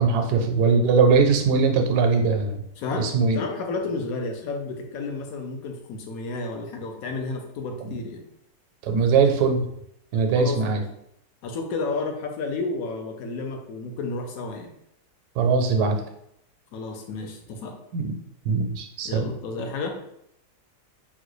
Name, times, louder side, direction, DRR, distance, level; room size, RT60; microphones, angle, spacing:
voice 1, 0.0-2.6 3.0-3.4 7.8-8.0 8.9-9.6 10.1-10.8 15.4-16.0 17.9-18.1 18.5-19.3, right 5 dB, 75° right, 4 dB, 1.1 m, -21 dB
voice 2, 2.8-8.2 10.3-10.8 11.4-14.7 16.7-17.7 19.0-20.0, left 3 dB, 70° left, 3 dB, 1.0 m, -31 dB
3.8 x 2.2 x 3.1 m, 0.76 s
omnidirectional pair, 1.7 m